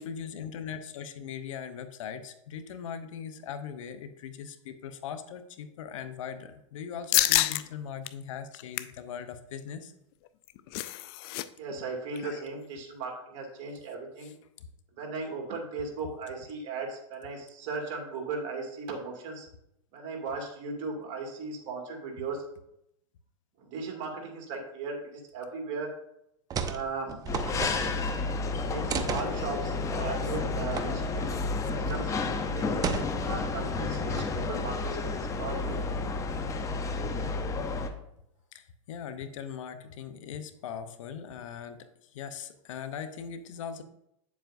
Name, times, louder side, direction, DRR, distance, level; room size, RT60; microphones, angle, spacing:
voice 1, 0.0-9.9 14.2-14.3 14.6-14.7 38.5-43.8, left 7 dB, 70° left, 11 dB, 0.8 m, -40 dB
sound 1, 7.1-7.6 8.0-8.1 8.5-9.0 10.3-11.4 11.7-11.8 12.2-12.4, left 17 dB, 50° left, 0.4 m, -27 dB
voice 2, 7.2-7.7 11.6-14.3 14.9-19.5 19.9-22.4 23.6-25.9 26.6-27.3 28.3-31.2 31.7-35.8, right 4 dB, 45° right, 1 dB, 2.2 m, -37 dB
sound 2, 26.5-26.8 27.1-28.2 28.9-29.3 30.8-30.9 31.2-31.3 31.9-32.1 32.8-33.4 33.9-34.4, right 6 dB, 20° right, 0.6 m, -33 dB
sound 3, 27.3-37.9, left 3 dB, 20° left, 0.7 m, -31 dB
8.7 x 7.2 x 2.6 m, 0.79 s
hypercardioid pair, 120°, 17 cm